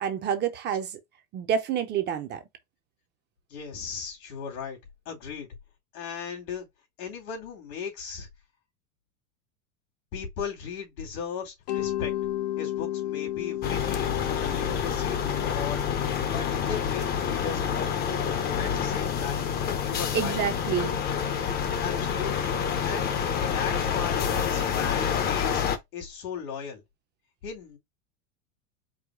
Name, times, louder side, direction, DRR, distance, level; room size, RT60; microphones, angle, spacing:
voice 1, 0.0-1.0 1.3-2.4 20.1-20.9, right 8 dB, 25° right, 0.5 m, -28 dB
voice 2, 3.5-4.8 5.0-5.5 5.9-6.7 7.0-8.3 10.1-12.1 12.6-17.9 18.5-19.5 19.8-20.4 21.5-22.6 22.8-23.2 23.5-25.7 25.9-26.8 27.4-27.8, left 6 dB, 85° left, 2.7 m, -37 dB
Mallet percussion, 11.7-20.4, left 13 dB, 60° left, 0.8 m, -35 dB
sound 1, 13.6-25.8, left 7 dB, 25° left, 0.5 m, -28 dB
4.8 x 2.1 x 4.7 m
supercardioid pair, 145°, 42 cm